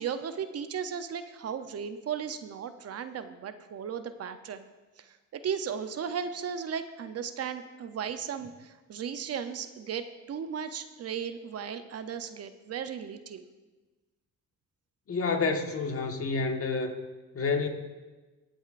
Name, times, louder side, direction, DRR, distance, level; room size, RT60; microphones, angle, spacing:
voice 1, 0.0-4.7 5.0-13.4, right 7 dB, 55° right, 10 dB, 0.7 m, -36 dB
voice 2, 15.1-17.0 17.3-17.7, left 4 dB, 50° left, 4 dB, 1.5 m, -29 dB
22.5 x 7.9 x 2.5 m, 1.2 s
cardioid pair, 90°, 30 cm